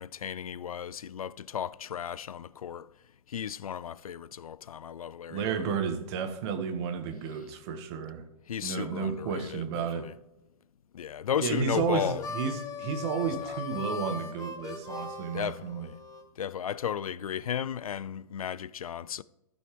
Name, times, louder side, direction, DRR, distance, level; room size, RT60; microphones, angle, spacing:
voice 1, 0.0-2.9 3.3-5.7 8.5-9.6 10.9-12.2 13.5-13.6 15.3-16.0 16.4-19.2, left 9 dB, 85° left, 0.4 m, -34 dB
voice 2, 5.3-8.2 8.6-10.1 11.4-15.9, right 6 dB, 50° right, 1.6 m, -32 dB
Harmonica, 12.0-16.2, left 5 dB, 20° left, 1.1 m, -39 dB
14.5 x 6.2 x 3.3 m
hypercardioid pair, 115°, 18 cm